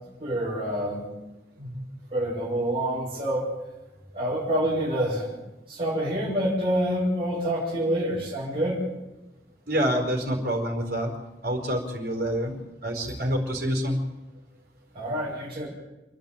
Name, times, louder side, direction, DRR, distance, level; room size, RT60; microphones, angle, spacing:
voice 1, 0.2-1.0 1.6-3.5 4.1-5.3 5.7-8.8 13.0-13.1 14.9-15.7, right 1 dB, 30° right, -6 dB, 5.8 m, -27 dB
voice 2, 9.7-11.1 11.4-14.0, equal, 60° right, 2 dB, 4.5 m, -27 dB
28.0 x 10.5 x 9.1 m, 1.0 s
head